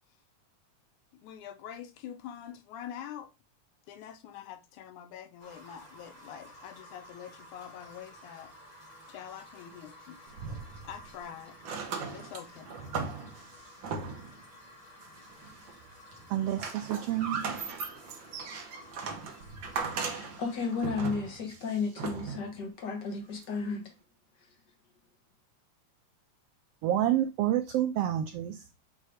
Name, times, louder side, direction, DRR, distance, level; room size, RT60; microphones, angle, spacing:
voice 1, 1.2-3.3 3.9-8.5 9.1-10.2 10.8-11.6 12.1-12.7, left 9 dB, 85° left, 2.3 m, -45 dB
sound 1, 5.4-20.8, left 1 dB, 15° left, 1.5 m, -53 dB
sound 2, 10.3-11.2 11.6-14.4 15.0-15.8 16.1-22.6 23.4-23.5, right 5 dB, 60° right, 1.3 m, -38 dB
voice 2, 16.3-17.4 26.8-28.7, right 12 dB, 85° right, 1.4 m, -29 dB
voice 3, 19.8-23.9, left 4 dB, 55° left, 1.3 m, -34 dB
7.3 x 3.2 x 4.9 m
omnidirectional pair, 3.4 m